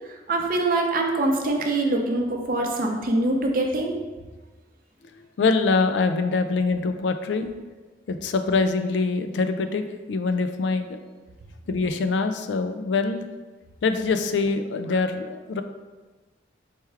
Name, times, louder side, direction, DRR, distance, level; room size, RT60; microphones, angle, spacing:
voice 1, 0.1-4.0, right 2 dB, 50° right, 2 dB, 0.6 m, -24 dB
voice 2, 5.2-7.5 8.1-9.8 10.1-11.0 11.7-13.2 13.8-15.6, left 4 dB, 90° left, 8 dB, 0.4 m, -24 dB
4.4 x 3.4 x 3.3 m, 1.3 s
head